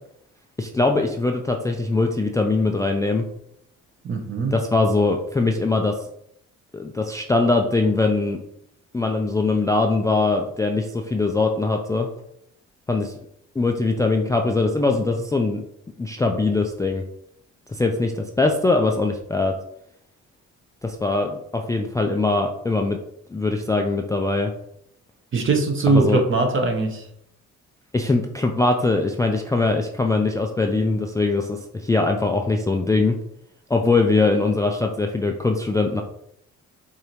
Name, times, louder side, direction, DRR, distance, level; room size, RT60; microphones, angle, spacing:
voice 1, 0.6-3.3 4.5-6.0 6.7-8.4 8.9-12.1 12.9-13.2 13.6-15.6 16.0-17.0 17.7-19.5 20.8-23.0 23.3-24.5 25.9-26.2 27.9-33.2 33.7-36.0, left 3 dB, 10° left, 3 dB, 0.3 m, -22 dB
voice 2, 4.0-4.5 25.3-27.0, right 3 dB, 40° right, 3 dB, 1.0 m, -21 dB
4.8 x 2.7 x 3.0 m, 0.73 s
cardioid pair, 90°, 30 cm